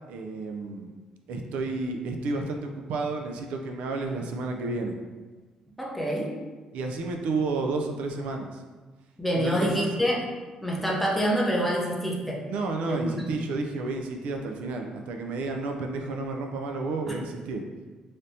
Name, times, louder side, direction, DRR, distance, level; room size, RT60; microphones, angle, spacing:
voice 1, 0.1-0.9 1.3-5.0 6.7-8.6 9.4-9.9 12.5-17.6, right 3 dB, 85° right, 3 dB, 0.3 m, -31 dB
voice 2, 5.8-6.3 9.2-10.2 10.6-12.4 12.9-13.3 17.1-17.2, equal, 5° left, -3 dB, 0.5 m, -26 dB
3.3 x 2.6 x 2.7 m, 1.3 s
cardioid pair, 160°, 2 cm